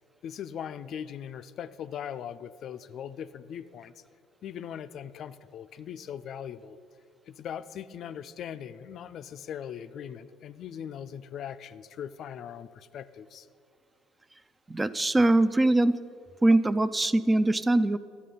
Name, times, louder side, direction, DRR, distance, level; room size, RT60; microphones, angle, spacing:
voice 1, 0.2-3.9 4.4-6.8 7.3-13.5, left 9 dB, 55° left, 13 dB, 0.4 m, -40 dB
voice 2, 14.7-16.0 16.4-18.0, right 2 dB, 20° right, 14 dB, 0.4 m, -22 dB
11.0 x 8.5 x 5.4 m, 2.4 s
hypercardioid pair, 70°, 0 cm